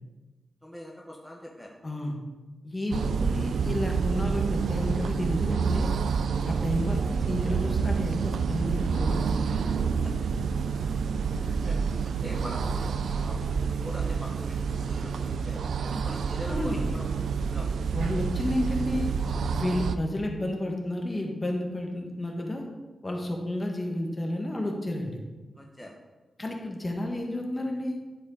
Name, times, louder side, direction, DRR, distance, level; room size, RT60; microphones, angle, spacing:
voice 1, 0.6-2.2 11.3-15.7 16.0-17.0 17.5-17.7 25.6-26.0, equal, 5° left, -1 dB, 1.2 m, -43 dB
voice 2, 1.8-2.1 2.6-5.9 6.4-9.5 16.5-16.8 17.9-19.1 19.5-22.6 23.0-25.2 26.4-28.0, left 1 dB, 35° left, 1 dB, 1.7 m, -31 dB
sound 1, 2.9-20.0, right 5 dB, 90° right, 0.3 m, -28 dB
11.0 x 4.3 x 4.1 m, 1.2 s
cardioid pair, 50°, 0 cm